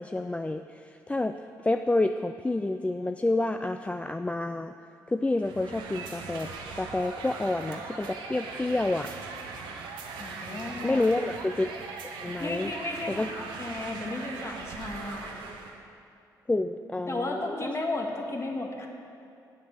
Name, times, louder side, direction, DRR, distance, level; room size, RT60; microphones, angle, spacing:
voice 1, 0.0-4.7 5.1-9.1 10.8-11.7 12.0-12.7 13.1-13.3 16.5-17.7, left 2 dB, 15° left, 7 dB, 0.4 m, -29 dB
sound 1, 5.4-15.8, right 4 dB, 85° right, 0.9 m, -40 dB
voice 2, 10.2-11.0 12.4-15.3 17.1-18.9, left 2 dB, 35° left, 1 dB, 1.7 m, -34 dB
8.0 x 7.9 x 6.5 m, 2.5 s
supercardioid pair, 55°, 8 cm